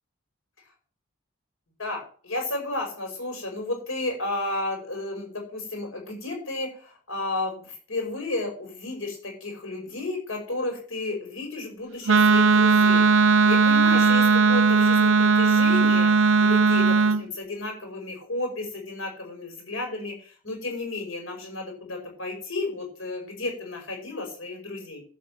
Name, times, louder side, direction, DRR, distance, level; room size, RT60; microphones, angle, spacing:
voice 1, 1.8-25.0, left 2 dB, 75° left, 2 dB, 5.5 m, -33 dB
Wind instrument woodwind instrument, 12.1-17.2, right 4 dB, 65° right, 0.6 m, -18 dB
12.0 x 5.4 x 7.5 m, 0.42 s
head